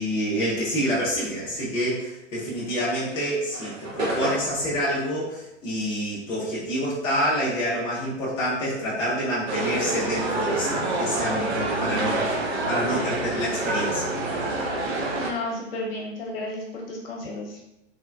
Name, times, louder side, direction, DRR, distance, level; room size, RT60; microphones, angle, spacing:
voice 1, 0.0-12.4 12.7-14.1, equal, 15° left, -8 dB, 0.5 m, -27 dB
sound 1, 2.6-7.3 7.6-9.6, right 1 dB, 80° right, 1.1 m, -34 dB
sound 2, 9.5-15.3, right 2 dB, 55° right, 0.6 m, -27 dB
voice 2, 15.2-17.6, left 2 dB, 50° left, -1 dB, 0.8 m, -33 dB
3.2 x 2.1 x 2.3 m, 0.85 s
figure-of-eight pair, 105°, 38 cm